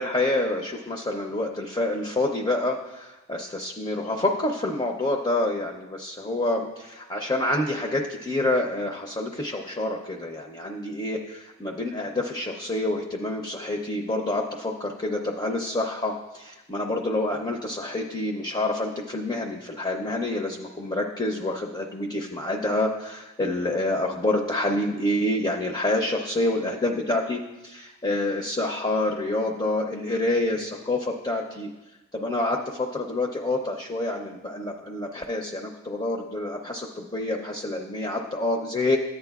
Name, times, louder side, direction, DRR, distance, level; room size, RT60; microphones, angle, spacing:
voice 1, 0.0-31.7 32.1-39.0, left 2 dB, 20° left, 1 dB, 0.6 m, -27 dB
14.0 x 8.9 x 2.3 m, 1.0 s
head